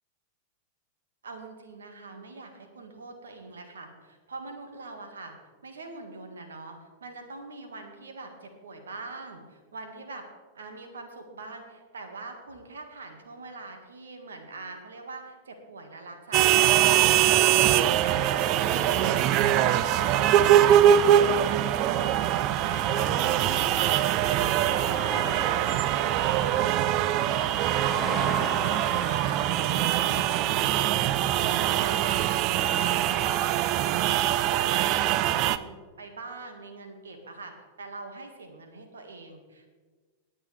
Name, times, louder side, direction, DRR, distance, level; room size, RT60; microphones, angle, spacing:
voice 1, 1.2-5.3 5.6-10.3 10.5-25.2 25.4-39.7, right 3 dB, 75° right, 4 dB, 1.9 m, -43 dB
sound 1, 16.3-35.6, right 11 dB, 45° right, 0.5 m, -23 dB
sound 2, 17.2-32.2, left 2 dB, 10° left, 3.2 m, -41 dB
18.5 x 8.8 x 3.4 m, 1.4 s
figure-of-eight pair, 95°, 0 cm